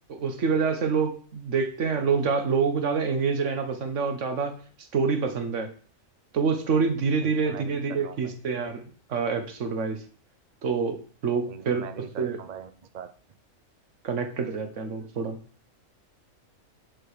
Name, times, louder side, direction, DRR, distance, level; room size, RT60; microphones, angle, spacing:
voice 1, 0.1-4.6 4.9-5.7 6.3-8.8 9.1-10.0 10.6-11.0 11.2-11.8 12.2-12.4 14.0-15.4, right 5 dB, 70° right, 7 dB, 1.4 m, -26 dB
voice 2, 7.2-8.4 11.5-13.1, right 7 dB, 50° right, 11 dB, 0.6 m, -42 dB
8.2 x 4.7 x 4.9 m, 0.43 s
omnidirectional pair, 1.3 m